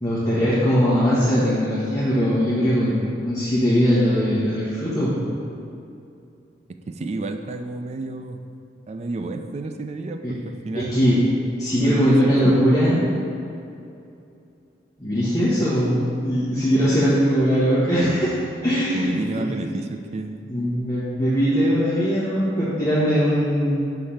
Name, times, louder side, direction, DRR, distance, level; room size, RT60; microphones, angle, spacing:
voice 1, 0.0-5.3 10.2-10.4 10.7-11.2 11.6-13.0 15.0-18.3 18.6-19.0 19.4-19.5 20.5-23.8, equal, 20° left, -11 dB, 1.1 m, -20 dB
voice 2, 6.9-8.4 8.9-11.2 11.8-12.5 18.9-20.4, right 2 dB, 35° right, 6 dB, 0.4 m, -30 dB
6.5 x 3.3 x 5.6 m, 2.6 s
head